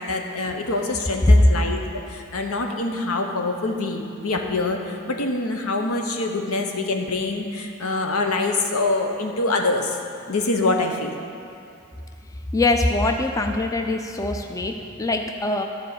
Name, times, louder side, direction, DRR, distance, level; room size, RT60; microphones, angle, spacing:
voice 1, 0.0-1.8 2.1-10.0 10.3-11.1, left 2 dB, 85° left, 3 dB, 0.9 m, -25 dB
voice 2, 12.5-15.6, left 2 dB, 15° left, 5 dB, 0.3 m, -21 dB
12.5 x 4.6 x 6.8 m, 2.6 s
head